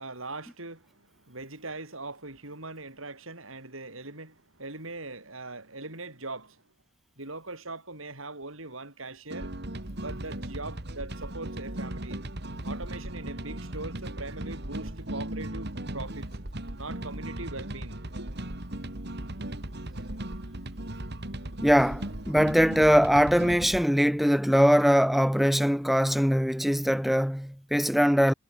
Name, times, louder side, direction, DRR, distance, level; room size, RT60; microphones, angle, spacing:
voice 1, 0.0-6.6 7.2-9.5 10.0-12.2 12.7-16.3 16.8-18.3, right 2 dB, 70° right, 8.0 m, -41 dB
sound 1, 9.3-23.8, right 1 dB, 50° right, 2.9 m, -37 dB
voice 2, 21.6-28.3, equal, ahead, 0.4 m, -22 dB
head